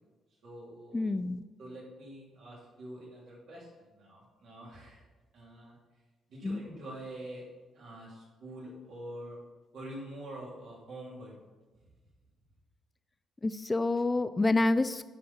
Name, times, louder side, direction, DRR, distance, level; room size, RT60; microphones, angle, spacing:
voice 1, 0.4-1.1 1.6-5.0 5.3-5.8 6.3-7.4 7.7-9.4 9.7-11.4, right 1 dB, 70° right, -4 dB, 2.9 m, -45 dB
voice 2, 0.9-1.4 6.4-6.6 13.4-15.0, left 2 dB, 20° left, 13 dB, 0.3 m, -28 dB
9.8 x 4.2 x 5.4 m, 1.3 s
cardioid pair, 90°, 0 cm